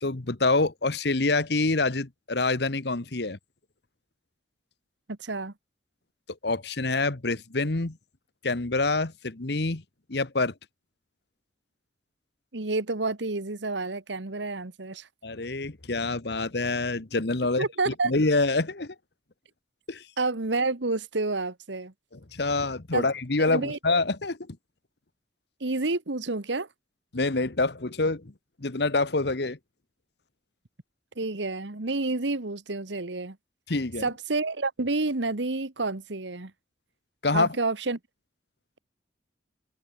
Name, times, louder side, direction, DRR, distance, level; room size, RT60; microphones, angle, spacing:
voice 1, 0.0-3.4 6.4-8.0 8.4-9.8 10.1-10.5 15.2-18.9 19.9-20.0 22.1-24.4 27.1-28.3 28.6-29.6 33.7-34.1 37.2-37.5, left 3 dB, 60° left, 1.3 m, -26 dB
voice 2, 5.1-5.5 12.5-15.1 17.6-18.1 20.2-21.9 22.9-23.1 23.4-23.8 25.6-26.7 31.2-33.4 34.0-36.5 37.3-38.0, right 3 dB, 75° right, 1.4 m, -29 dB
head